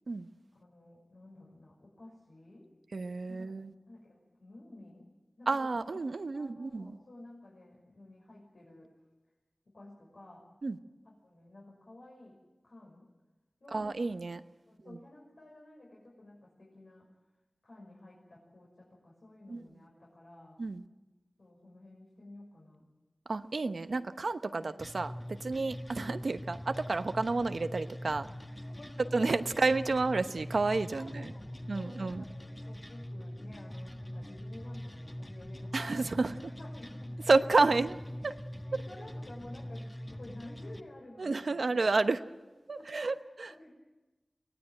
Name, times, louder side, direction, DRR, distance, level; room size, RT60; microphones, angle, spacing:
voice 1, 0.6-2.7 3.3-3.5 3.9-5.1 5.4-8.9 9.7-10.4 11.0-12.4 12.6-13.1 13.6-14.0 14.7-17.1 17.6-20.6 21.4-22.9 24.5-24.7 25.9-26.1 28.7-29.4 30.9-37.7 38.1-41.8 42.8-43.7, left 1 dB, 85° left, -4 dB, 5.8 m, -53 dB
voice 2, 2.9-3.7 5.5-7.0 10.6-10.8 13.7-14.4 19.5-19.6 20.6-20.8 23.3-28.3 29.1-31.3 31.7-32.2 35.7-36.5 37.3-37.9 38.2-38.3 41.2-42.2 42.7-43.5, right 3 dB, 80° right, 9 dB, 1.0 m, -30 dB
sound 1, 24.8-40.8, equal, 25° left, 1.6 m, -43 dB
23.5 x 18.0 x 9.1 m, 1.1 s
wide cardioid pair, 65°, 0 cm